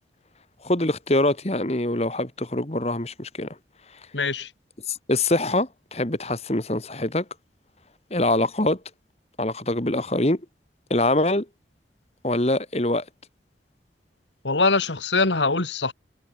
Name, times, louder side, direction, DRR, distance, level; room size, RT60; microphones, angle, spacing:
voice 1, 0.6-3.5 4.9-7.2 8.1-8.8 9.4-10.4 10.9-11.5 12.2-13.0, left 1 dB, 35° left, 2.0 m, -24 dB
voice 2, 4.1-4.5 14.4-15.9, left 3 dB, 90° left, 2.6 m, -22 dB
head